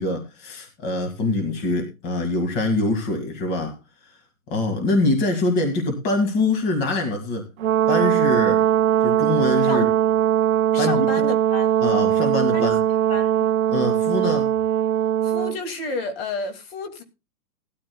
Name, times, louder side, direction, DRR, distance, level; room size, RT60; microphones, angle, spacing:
voice 1, 0.0-3.8 4.0-4.2 4.5-7.5 7.9-8.6 9.0-9.9 10.8-11.1 11.8-12.8 13.7-14.5, left 2 dB, 20° left, 2.0 m, -24 dB
Brass instrument, 7.6-15.6, right 11 dB, 60° right, 0.8 m, -20 dB
voice 2, 10.7-11.7 12.5-12.7 13.1-13.5 15.2-17.0, left 4 dB, 40° left, 2.4 m, -31 dB
18.0 x 13.0 x 2.3 m
hypercardioid pair, 165°, 46 cm